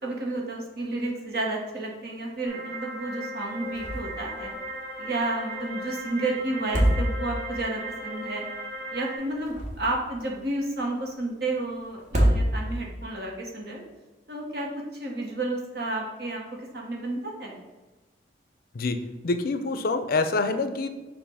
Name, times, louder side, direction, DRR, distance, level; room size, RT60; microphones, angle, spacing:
voice 1, 0.0-4.5 5.0-8.4 8.9-13.8 14.3-17.6, right 2 dB, 55° right, -1 dB, 1.4 m, -31 dB
sound 1, 2.5-9.2, right 1 dB, 20° right, 1.5 m, -37 dB
sound 2, 3.7-4.3 4.5-4.6 6.5-7.5 9.2-10.1 12.0-12.9, equal, 40° right, 1.1 m, -25 dB
voice 2, 18.7-20.9, left 3 dB, 50° left, 9 dB, 0.4 m, -26 dB
6.9 x 2.6 x 5.6 m, 1.2 s
head